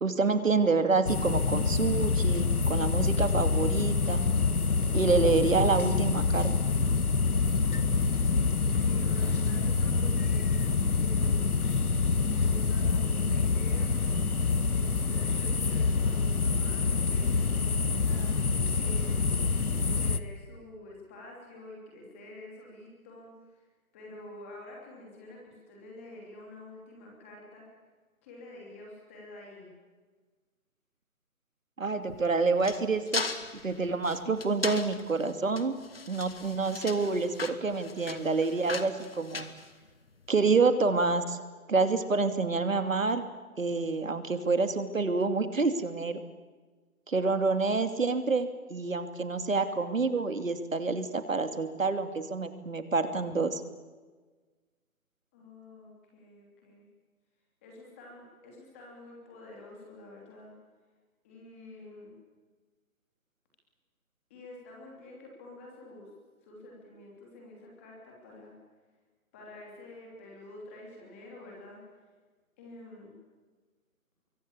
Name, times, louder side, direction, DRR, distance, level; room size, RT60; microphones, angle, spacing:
voice 1, 0.0-4.3 4.9-6.5 31.8-33.2 33.6-35.7 36.1-39.5 40.3-41.4 41.7-43.2 43.6-46.2 47.1-53.6, right 4 dB, 65° right, 9 dB, 2.7 m, -27 dB
sound 1, 1.1-20.2, left 4 dB, 85° left, 1.8 m, -26 dB
voice 2, 8.8-10.6 10.9-11.5 12.3-13.9 14.6-18.3 18.7-19.3 20.0-23.3 23.9-27.6 28.2-29.7 55.3-56.9 57.6-60.5 61.2-62.1 64.3-66.1 66.4-68.5 69.3-71.8 72.6-73.1, left 2 dB, 10° left, -1 dB, 2.9 m, -48 dB
sound 2, 32.0-40.3, left 4 dB, 45° left, 2.0 m, -38 dB
25.5 x 24.0 x 8.7 m, 1.3 s
hypercardioid pair, 175°, 43 cm